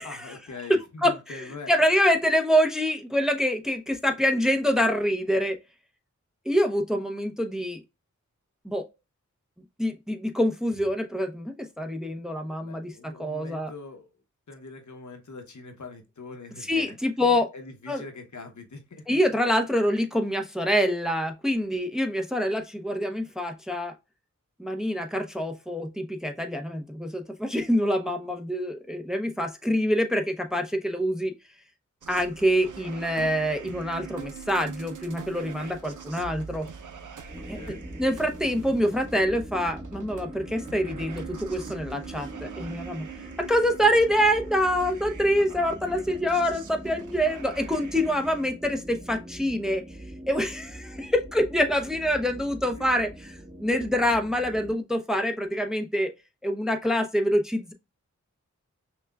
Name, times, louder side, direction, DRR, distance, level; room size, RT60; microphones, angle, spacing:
voice 1, 0.0-1.7 12.6-14.1 14.5-19.2 37.3-37.8 52.7-52.9, left 3 dB, 65° left, 0.9 m, -43 dB
voice 2, 0.7-5.6 6.5-7.8 8.6-8.8 9.8-13.7 16.7-17.5 17.9-18.0 19.1-23.9 24.6-31.3 32.1-36.7 37.5-37.6 38.0-43.1 43.4-49.8 50.3-53.3 53.6-56.1 56.4-57.7, equal, ahead, 0.7 m, -26 dB
sound 1, 32.0-48.5, right 7 dB, 75° right, 0.6 m, -44 dB
sound 2, 37.3-54.8, right 1 dB, 30° right, 1.2 m, -42 dB
5.9 x 2.3 x 2.2 m
cardioid pair, 40°, 31 cm